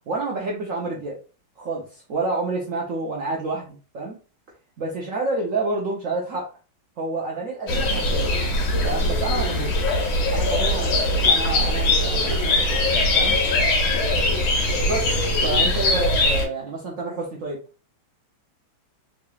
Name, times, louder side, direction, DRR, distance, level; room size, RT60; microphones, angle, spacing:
voice 1, 0.1-1.2 1.6-4.2 4.8-6.5 7.0-8.3 8.8-9.8 10.3-12.8 13.1-13.4 14.9-17.6, right 3 dB, 75° right, -2 dB, 0.7 m, -29 dB
sound 1, 7.7-16.4, left 2 dB, 90° left, 1.8 m, -21 dB
3.8 x 3.0 x 2.3 m, 0.36 s
omnidirectional pair, 2.2 m